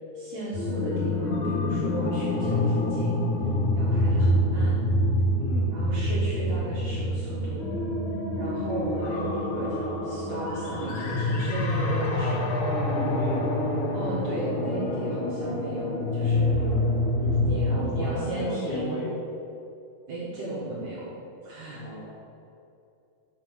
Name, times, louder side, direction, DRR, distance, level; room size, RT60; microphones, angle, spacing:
voice 1, 0.1-3.2 3.7-4.8 5.7-7.6 8.4-12.4 13.9-16.5 17.4-19.1 20.1-21.1 21.4-21.8, right 1 dB, 65° right, -8 dB, 3.0 m, -35 dB
sound 1, 0.5-18.1, left 1 dB, 60° left, 1.4 m, -26 dB
voice 2, 5.4-5.8 12.9-13.5 16.5-16.9 17.2-17.4 17.7-19.2 21.7-22.1, left 2 dB, 75° left, -3 dB, 3.3 m, -35 dB
7.4 x 6.3 x 7.7 m, 2.6 s
omnidirectional pair, 3.7 m